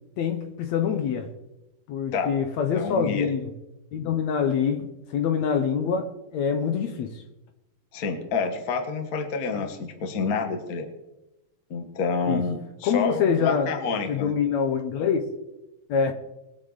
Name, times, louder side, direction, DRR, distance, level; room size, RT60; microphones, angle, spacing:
voice 1, 0.2-1.3 1.9-3.5 3.9-7.2 12.3-12.4 12.8-13.7 14.1-15.3 15.9-16.1, left 7 dB, 65° left, 2.1 m, -25 dB
voice 2, 2.7-3.3 7.9-10.9 11.7-14.3, left 5 dB, 40° left, 1.4 m, -28 dB
22.5 x 7.9 x 4.0 m
omnidirectional pair, 3.7 m